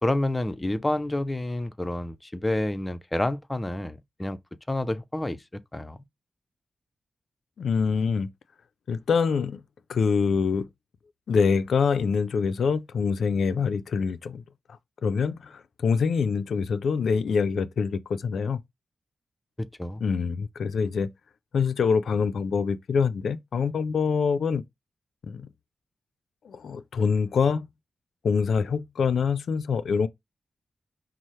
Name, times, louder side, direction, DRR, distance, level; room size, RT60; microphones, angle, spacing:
voice 1, 0.0-4.4 4.7-5.4 5.7-6.0 19.6-20.0, left 1 dB, 20° left, 0.5 m, -29 dB
voice 2, 7.6-8.3 8.9-9.6 9.9-10.7 11.3-14.4 15.0-18.6 20.0-21.1 21.5-24.6 25.2-25.5 26.4-27.7 28.2-30.1, left 5 dB, 80° left, 0.3 m, -25 dB
5.4 x 2.0 x 3.1 m
cardioid pair, 65°, 0 cm